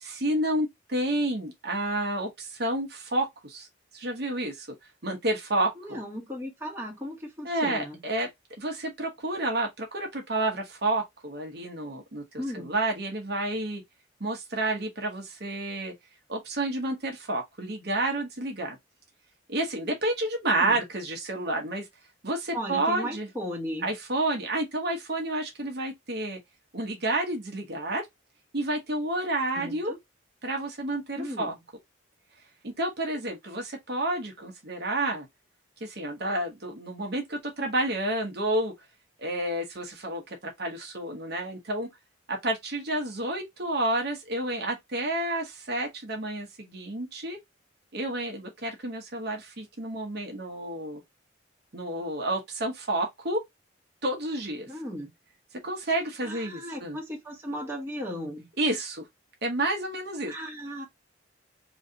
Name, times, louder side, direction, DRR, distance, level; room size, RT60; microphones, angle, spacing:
voice 1, 0.0-3.7 3.9-4.7 5.0-6.0 7.4-8.3 8.6-12.2 12.5-13.8 14.2-15.9 16.3-18.8 19.5-21.9 22.2-23.3 23.8-26.4 26.7-28.1 28.5-29.9 30.4-31.5 32.6-35.3 35.8-38.7 39.2-41.9 42.3-47.4 47.9-51.0 51.7-53.4 54.0-54.7 55.6-57.0 58.6-59.0 59.4-60.3, right 1 dB, 50° right, 1.0 m, -30 dB
voice 2, 5.8-8.0 12.4-12.7 20.5-20.8 22.5-23.9 29.5-30.0 31.2-31.6 54.7-55.1 56.2-58.5 60.3-60.8, equal, 10° right, 1.2 m, -36 dB
3.1 x 2.7 x 3.8 m
head